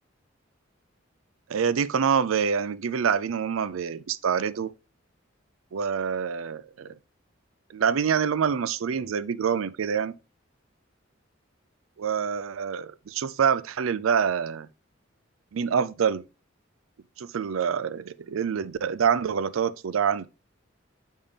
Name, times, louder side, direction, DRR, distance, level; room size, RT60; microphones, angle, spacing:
voice 1, 1.5-4.7 5.7-6.9 7.7-10.1 12.0-14.7 15.5-16.2 17.2-20.3, right 7 dB, 90° right, 0.4 m, -26 dB
7.2 x 5.3 x 3.4 m
head